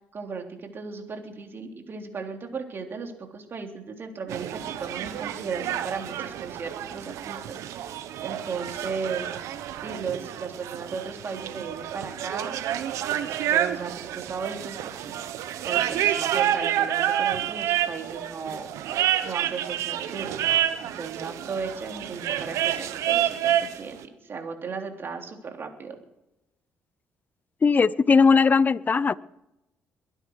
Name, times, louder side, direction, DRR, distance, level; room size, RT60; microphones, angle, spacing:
voice 1, 0.1-9.3 9.8-12.6 13.1-18.7 19.2-20.3 20.8-26.0, right 5 dB, 45° right, 3.5 m, -36 dB
sound 1, 4.3-23.8, right 11 dB, 75° right, 1.0 m, -29 dB
voice 2, 27.6-29.2, left 5 dB, 35° left, 0.7 m, -19 dB
22.5 x 10.0 x 4.8 m
supercardioid pair, 70°, 5 cm